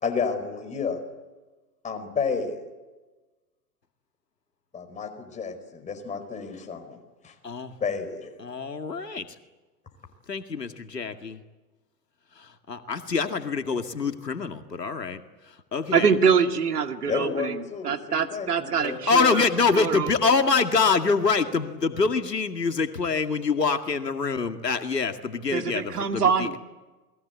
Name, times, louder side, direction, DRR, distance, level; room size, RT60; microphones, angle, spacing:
voice 1, 0.0-1.0 1.8-2.6 4.7-7.0 7.2-7.3 7.8-8.3 17.1-19.0, left 5 dB, 15° left, 5 dB, 4.9 m, -31 dB
voice 2, 8.4-9.3 10.3-11.4 12.4-15.2 15.7-16.1 19.1-26.6, left 4 dB, 80° left, 7 dB, 2.2 m, -25 dB
voice 3, 15.9-19.4 19.7-20.1 25.5-26.6, right 6 dB, 70° right, 6 dB, 2.4 m, -24 dB
29.0 x 21.5 x 8.3 m, 1.2 s
figure-of-eight pair, 110°, 48 cm